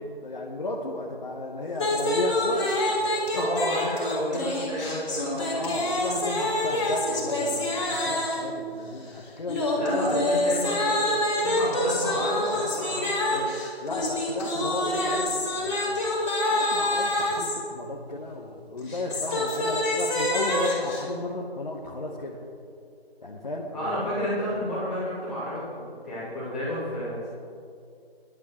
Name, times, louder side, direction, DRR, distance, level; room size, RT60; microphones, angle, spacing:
voice 1, 0.2-3.0 3.3-3.5 5.4-9.7 13.8-16.0 16.5-22.4 23.2-24.0, left 2 dB, 45° left, -3 dB, 1.3 m, -34 dB
sound 1, 1.7-8.5 9.5-17.6 18.8-21.0, left 1 dB, 30° left, 3.5 m, -26 dB
voice 2, 3.3-5.7 9.8-11.1 11.4-13.5 23.7-27.3, equal, ahead, -17 dB, 3.8 m, -31 dB
25.5 x 11.5 x 3.1 m, 2.4 s
figure-of-eight pair, 165°, 31 cm